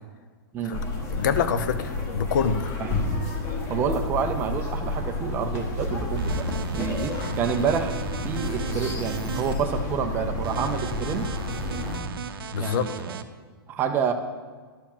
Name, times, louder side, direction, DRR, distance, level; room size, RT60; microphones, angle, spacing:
voice 1, 0.5-0.9 2.8-2.9 3.7-7.9 8.2-11.3 12.6-13.0 13.7-14.1, right 7 dB, 15° right, 7 dB, 0.4 m, -28 dB
sound 1, 0.7-12.0, left 2 dB, 20° left, 1.4 m, -30 dB
voice 2, 1.1-2.8 12.5-12.9, left 7 dB, 55° left, 11 dB, 0.7 m, -26 dB
sound 2, 6.2-9.5 10.4-13.2, right 7 dB, 70° right, 0.7 m, -36 dB
11.5 x 4.7 x 7.2 m, 1.5 s
hypercardioid pair, 160°, 12 cm